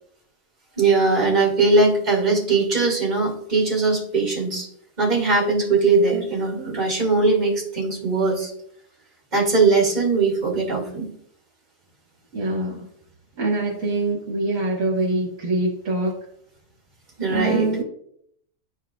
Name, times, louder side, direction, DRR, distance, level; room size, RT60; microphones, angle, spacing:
voice 1, 0.8-4.7 5.0-8.5 9.3-11.1 17.2-17.7, right 3 dB, 30° right, -4 dB, 2.0 m, -20 dB
voice 2, 12.3-12.9 13.4-16.2 17.3-17.8, right 2 dB, 60° right, -2 dB, 1.6 m, -24 dB
10.5 x 4.4 x 2.4 m, 0.69 s
omnidirectional pair, 1.6 m